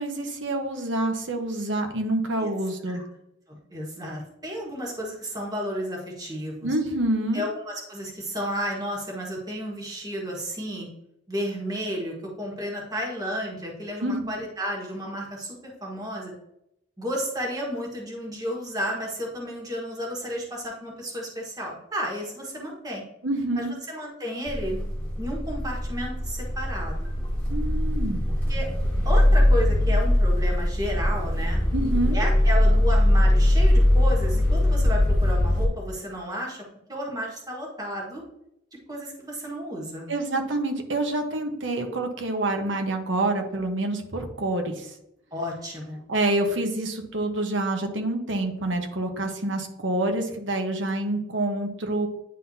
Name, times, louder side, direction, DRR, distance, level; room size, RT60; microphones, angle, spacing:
voice 1, 0.0-3.0 6.6-7.4 14.0-14.3 23.2-23.7 27.5-28.2 31.7-32.2 40.1-44.9 46.1-52.1, right 2 dB, 80° right, 4 dB, 1.1 m, -27 dB
voice 2, 3.5-6.7 7.3-10.9 11.3-16.3 17.0-23.0 23.6-24.9 25.2-27.1 28.5-28.7 29.0-31.6 32.1-36.6 36.9-38.2 38.9-40.1 45.3-46.0, equal, 20° right, -2 dB, 1.5 m, -32 dB
sound 1, 24.5-35.7, left 1 dB, 10° left, 1.6 m, -21 dB
9.8 x 3.9 x 2.8 m, 0.81 s
head